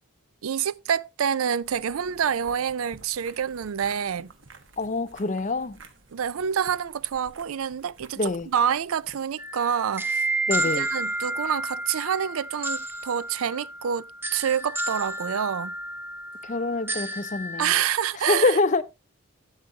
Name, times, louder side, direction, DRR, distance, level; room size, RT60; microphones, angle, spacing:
voice 1, 0.4-4.3 6.1-10.2 10.8-15.8 17.6-18.8, right 8 dB, 85° right, 0.4 m, -27 dB
sound 1, 1.6-9.3, right 3 dB, 65° right, 1.2 m, -52 dB
voice 2, 4.8-5.8 8.2-8.5 10.5-10.9 16.4-17.7 18.3-18.8, left 3 dB, 35° left, 0.5 m, -25 dB
sound 2, 9.4-17.8, right 1 dB, 10° right, 0.7 m, -31 dB
12.0 x 8.2 x 2.8 m
head